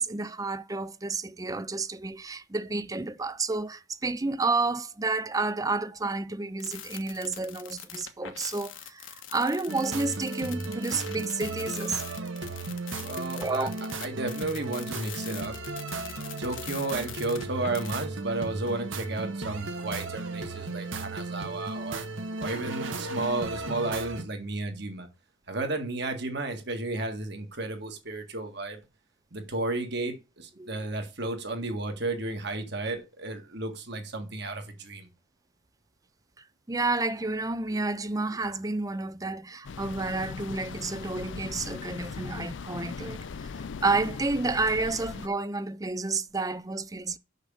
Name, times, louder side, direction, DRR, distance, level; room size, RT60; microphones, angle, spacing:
voice 1, 0.0-12.0 13.4-13.7 30.6-30.8 36.7-47.2, right 3 dB, 20° right, 0.5 m, -30 dB
sound 1, 6.6-17.9, left 10 dB, 80° left, 1.4 m, -43 dB
sound 2, 9.7-24.2, right 3 dB, 85° right, 1.5 m, -35 dB
voice 2, 13.0-15.6 16.4-22.0 22.4-25.1 25.5-28.8 29.3-35.1, right 2 dB, 60° right, 2.0 m, -33 dB
sound 3, 39.6-45.3, left 5 dB, 65° left, 0.4 m, -39 dB
6.6 x 6.2 x 7.0 m
head